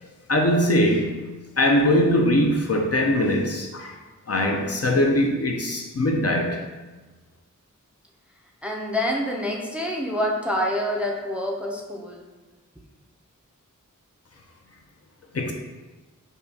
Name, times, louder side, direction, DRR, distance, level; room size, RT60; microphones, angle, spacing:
voice 1, 0.3-1.2 1.6-3.9 4.3-6.6 15.3-15.5, left 1 dB, 50° left, 1 dB, 0.5 m, -21 dB
voice 2, 8.6-12.2, equal, 5° right, -1 dB, 0.5 m, -27 dB
5.2 x 2.3 x 2.7 m, 1.2 s
wide cardioid pair, 55°, 32 cm